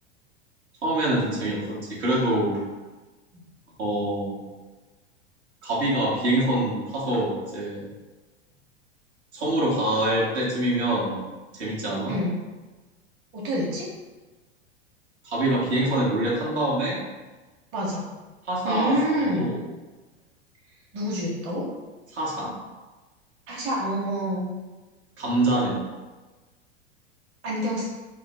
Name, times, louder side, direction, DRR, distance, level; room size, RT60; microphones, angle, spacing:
voice 1, 0.8-2.6 3.8-4.4 5.6-7.9 9.3-11.2 11.5-12.1 15.2-17.0 18.5-19.0 19.3-19.6 22.1-22.6 25.2-25.8, right 1 dB, 75° right, -5 dB, 1.2 m, -25 dB
voice 2, 13.3-13.9 17.7-18.1 18.6-19.6 20.9-21.7 23.5-24.5 27.4-27.9, equal, 45° right, -4 dB, 1.2 m, -27 dB
3.7 x 2.0 x 3.5 m, 1.2 s
hypercardioid pair, 95°, 34 cm